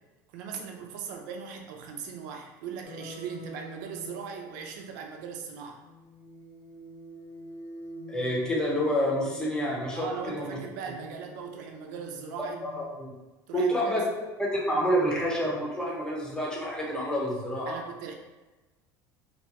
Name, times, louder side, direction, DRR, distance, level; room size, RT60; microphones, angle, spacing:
voice 1, 0.3-5.8 10.0-12.6 13.5-14.1 17.7-18.1, right 6 dB, 80° right, 2 dB, 0.5 m, -39 dB
sound 1, 2.8-5.5 5.8-12.9, left 1 dB, 75° left, 0.6 m, -47 dB
voice 2, 8.1-10.1 10.3-10.6 12.6-13.1 13.5-14.0 14.4-17.8, equal, 10° left, -3 dB, 0.8 m, -28 dB
2.8 x 2.1 x 2.9 m, 1.1 s
supercardioid pair, 110°, 10 cm